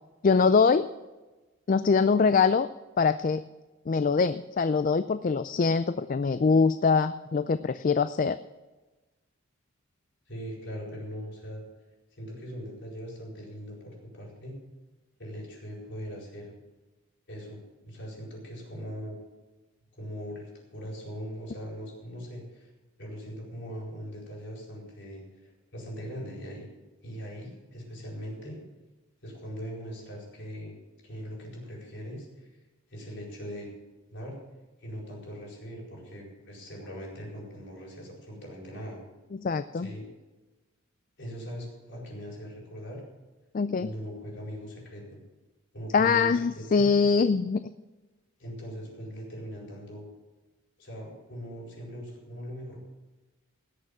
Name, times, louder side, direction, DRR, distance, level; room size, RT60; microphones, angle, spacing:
voice 1, 0.2-0.9 1.7-2.7 3.0-3.4 3.9-8.4 39.3-39.9 43.5-43.9 45.9-47.7, left 5 dB, 40° left, 12 dB, 0.4 m, -23 dB
voice 2, 10.3-11.6 12.1-14.6 15.2-16.5 17.3-19.2 19.9-22.7 23.0-26.7 27.0-28.6 29.2-30.8 31.0-32.5 32.9-33.7 34.1-34.4 34.8-39.0 39.7-40.1 41.2-43.0 43.8-45.2 45.7-46.9 48.4-50.0 50.8-52.8, equal, 60° left, -2 dB, 4.6 m, -40 dB
17.5 x 6.7 x 7.1 m, 1.2 s
head